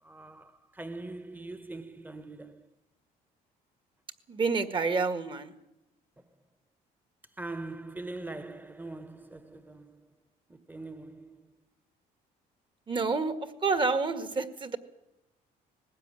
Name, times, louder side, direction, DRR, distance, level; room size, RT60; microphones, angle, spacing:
voice 1, 0.0-2.7 7.4-10.1 10.5-11.5, right 2 dB, 10° right, 1.5 m, -42 dB
voice 2, 4.3-5.5 12.9-13.4 13.6-14.8, right 4 dB, 30° right, 1.9 m, -28 dB
20.0 x 16.0 x 9.8 m
cardioid pair, 110°, 17 cm